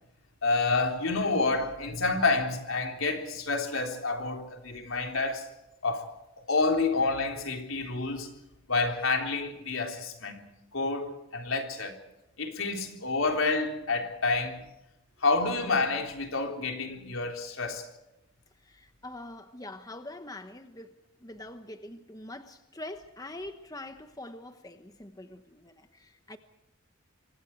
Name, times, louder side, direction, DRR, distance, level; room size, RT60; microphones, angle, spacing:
voice 1, 0.4-5.5 5.8-6.1 6.5-8.3 8.7-10.4 10.7-12.0 12.4-14.6 15.2-17.9, left 3 dB, 75° left, 3.6 m, -28 dB
voice 2, 18.6-20.9 21.2-26.4, left 1 dB, 15° left, 1.1 m, -44 dB
27.0 x 24.5 x 4.6 m
head